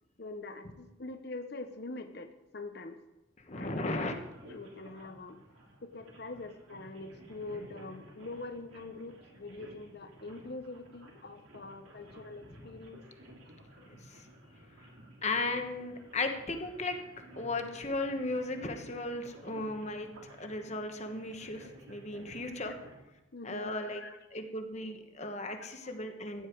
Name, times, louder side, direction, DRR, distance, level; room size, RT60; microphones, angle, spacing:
voice 1, 0.2-3.0 3.5-3.9 4.4-5.4 5.8-13.0 23.3-24.2 25.6-26.0, left 2 dB, 50° left, 7 dB, 0.9 m, -44 dB
voice 2, 3.5-4.2 13.8-13.9 15.2-17.0 17.4-20.1 20.4-22.7 23.4-24.0 24.3-26.5, left 2 dB, 35° left, 6 dB, 1.2 m, -36 dB
sound 1, 3.6-22.9, equal, 85° right, 3.0 m, -54 dB
15.0 x 9.9 x 4.6 m, 0.97 s
head